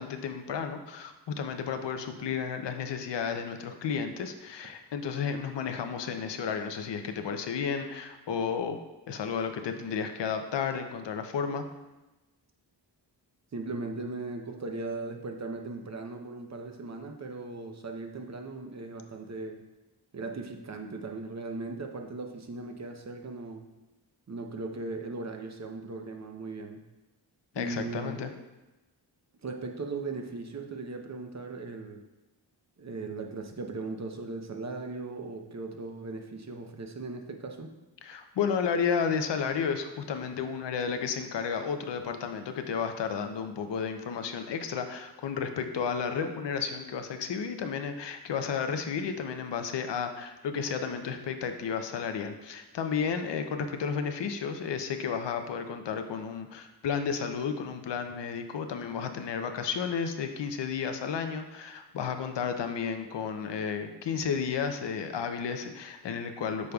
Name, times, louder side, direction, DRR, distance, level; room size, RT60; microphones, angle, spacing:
voice 1, 0.0-8.8 9.1-11.7 27.5-28.3 38.0-66.7, left 6 dB, 90° left, 7 dB, 0.6 m, -32 dB
voice 2, 13.5-19.6 20.1-23.6 24.3-26.8 27.5-28.2 29.4-32.0 32.8-37.7, right 3 dB, 40° right, 4 dB, 0.7 m, -38 dB
8.2 x 5.3 x 2.3 m, 1.1 s
wide cardioid pair, 75°, 41 cm